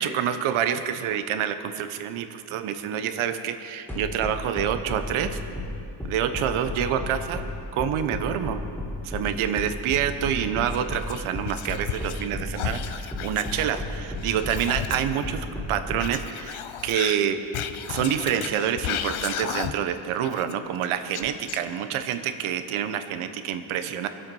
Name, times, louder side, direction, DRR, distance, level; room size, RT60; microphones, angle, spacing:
voice 1, 0.0-5.4 6.1-7.4 7.7-8.6 9.0-17.4 17.9-24.1, right 9 dB, 80° right, 9 dB, 1.1 m, -27 dB
sound 1, 3.9-16.1, left 1 dB, 5° left, 2.7 m, -33 dB
Whispering, 10.7-12.3 12.5-15.2 16.0-19.9 20.2-22.0, left 10 dB, 80° left, 0.9 m, -34 dB
22.5 x 8.2 x 5.5 m, 2.6 s
supercardioid pair, 65°, 49 cm